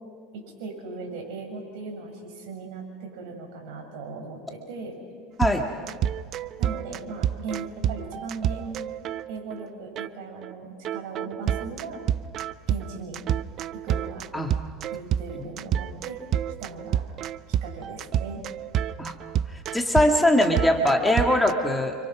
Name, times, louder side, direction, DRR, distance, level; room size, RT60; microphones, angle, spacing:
voice 1, 0.3-5.0 6.6-8.9 9.3-12.0 12.7-13.2 13.8-14.2 14.9-16.2 16.6-17.0 17.6-18.4, right 4 dB, 70° right, 1 dB, 7.5 m, -38 dB
sound 1, 5.4-9.7 10.0-10.1 10.4-10.5 10.8-21.5, right 10 dB, 40° right, 0.6 m, -29 dB
voice 2, 19.5-22.0, left 1 dB, 5° left, 2 dB, 1.9 m, -21 dB
29.5 x 26.5 x 6.2 m, 2.1 s
supercardioid pair, 130°, 0 cm